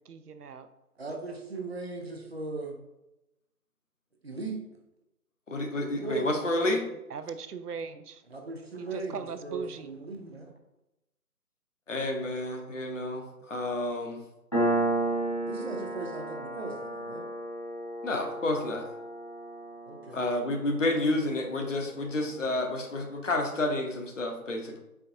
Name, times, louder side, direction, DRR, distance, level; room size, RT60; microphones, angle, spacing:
voice 1, 0.1-0.7 6.5-8.2 8.8-9.9, right 5 dB, 85° right, 10 dB, 0.5 m, -40 dB
voice 2, 1.0-2.8 4.2-4.6 5.8-6.3 8.3-10.5 15.4-17.2 19.9-20.5 20.8-21.1, right 3 dB, 45° right, 2 dB, 0.7 m, -38 dB
voice 3, 5.5-6.8 11.9-14.2 18.0-18.9 20.1-24.8, left 2 dB, 55° left, 3 dB, 0.8 m, -30 dB
Piano, 14.5-21.7, right 1 dB, 20° left, 0.7 m, -33 dB
4.5 x 3.4 x 2.7 m, 0.92 s
figure-of-eight pair, 150°, 45 cm